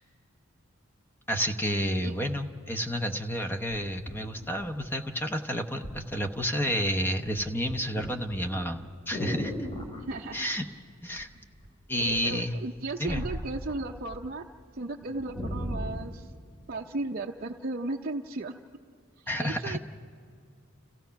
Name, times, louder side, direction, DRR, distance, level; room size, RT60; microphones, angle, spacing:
voice 1, 1.3-9.7 10.3-10.7 11.0-11.3 11.9-12.5 13.0-13.2 19.3-19.8, equal, 10° left, 5 dB, 0.8 m, -30 dB
sound 1, 4.1-5.2 5.8-6.0 6.4-6.9 7.2-10.0 11.2-11.7 12.0-14.3 14.6-14.7 15.0-16.1 16.8-16.9, equal, 30° left, 2.5 m, -37 dB
voice 2, 9.9-10.7 12.0-14.5 14.7-16.3 16.7-18.5 19.2-19.8, right 2 dB, 45° right, 2 dB, 0.6 m, -35 dB
30.0 x 15.5 x 5.8 m, 2.3 s
head